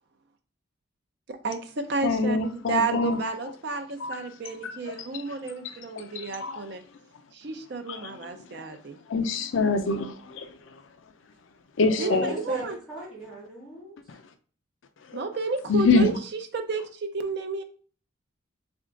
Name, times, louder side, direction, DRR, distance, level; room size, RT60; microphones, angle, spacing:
voice 1, 1.3-6.8 7.3-9.0 12.0-12.8 15.1-16.1 16.5-17.6, right 4 dB, 55° right, 0.5 m, -31 dB
voice 2, 2.0-3.2 4.0-4.3 4.6-5.2 5.6-6.7 7.9-8.7 9.1-10.8 11.8-12.3 14.1-14.2 15.1-15.3 15.7-16.2, left 3 dB, 75° left, 0.5 m, -26 dB
voice 3, 12.0-14.0, right 2 dB, 5° right, 1.9 m, -38 dB
3.6 x 3.5 x 3.7 m
head